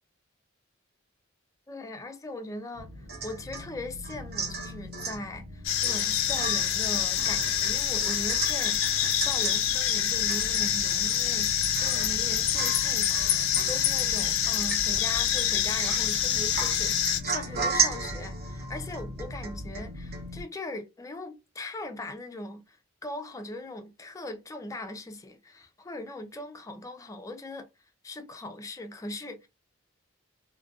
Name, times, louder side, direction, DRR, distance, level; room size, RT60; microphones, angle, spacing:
voice 1, 1.7-27.7 28.0-29.5, left 2 dB, 15° left, 0.4 m, -40 dB
sound 1, 2.7-20.4, left 1 dB, 70° right, 1.0 m, -41 dB
Domestic sounds home sounds / Chink clink / Drip, 3.1-3.7 4.0-5.2 5.8-6.1 6.4-9.6 10.0-10.1 10.3-10.8 11.2-11.3 11.8-12.2 12.5-12.9 13.1-13.9 14.4-15.2 15.6-16.2 16.5-19.9 20.1-20.2, right 5 dB, 50° right, 0.7 m, -34 dB
sound 2, 5.6-17.2, left 10 dB, 75° left, 0.4 m, -26 dB
2.4 x 2.1 x 2.4 m
head